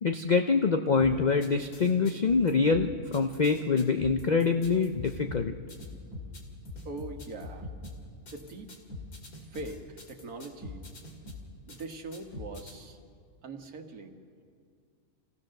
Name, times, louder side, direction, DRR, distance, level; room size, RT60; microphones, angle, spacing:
voice 1, 0.0-5.5, left 4 dB, 50° left, 6 dB, 0.5 m, -25 dB
sound 1, 1.0-12.7, left 2 dB, 80° left, 2.7 m, -43 dB
voice 2, 6.8-7.7 8.2-8.7 9.5-10.8 11.7-13.0 13.4-14.2, right 2 dB, 75° right, 4 dB, 2.0 m, -42 dB
26.0 x 16.5 x 6.5 m, 2.2 s
omnidirectional pair, 1.6 m